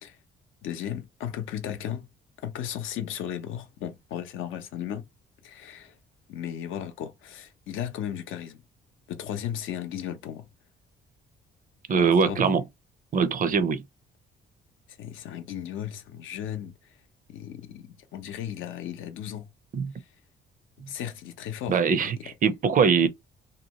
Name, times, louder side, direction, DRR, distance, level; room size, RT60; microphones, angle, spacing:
voice 1, 0.6-2.1 2.4-5.0 5.4-5.9 6.3-8.6 9.1-10.5 12.0-12.5 15.0-16.7 17.3-19.5 20.9-22.2, left 10 dB, 80° left, 0.6 m, -35 dB
voice 2, 11.9-12.6 13.1-13.8 19.7-19.9 21.7-23.1, right 6 dB, 45° right, 0.5 m, -22 dB
2.7 x 2.2 x 2.9 m
cardioid pair, 90°, 20 cm